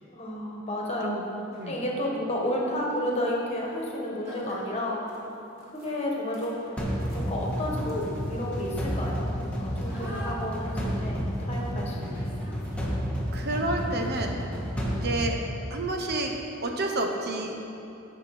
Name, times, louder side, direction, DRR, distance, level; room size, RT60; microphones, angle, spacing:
voice 1, 0.1-1.2 1.7-5.0 5.7-12.3, left 1 dB, 30° left, -2 dB, 1.6 m, -31 dB
sound 1, 0.8-0.9 1.4-1.8 3.5-3.7 3.9-4.0 4.2-13.1, right 1 dB, 15° right, 2.4 m, -47 dB
sound 2, 6.8-16.0, equal, 5° left, 1.4 m, -31 dB
voice 2, 13.3-14.4 15.0-15.4 15.7-16.3 16.6-17.6, right 2 dB, 55° right, 3 dB, 0.9 m, -29 dB
16.0 x 5.9 x 4.3 m, 2.8 s
head